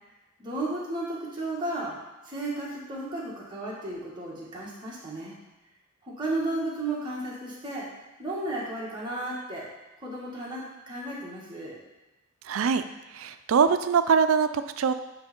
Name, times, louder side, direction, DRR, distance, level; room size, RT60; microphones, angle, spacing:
voice 1, 0.4-2.0 2.2-5.4 6.0-7.9 8.2-9.7 10.0-11.8, right 2 dB, 25° right, -6 dB, 1.8 m, -33 dB
voice 2, 12.5-12.8 13.1-14.9, right 6 dB, 80° right, 11 dB, 0.4 m, -23 dB
9.1 x 3.3 x 4.3 m, 1.0 s
head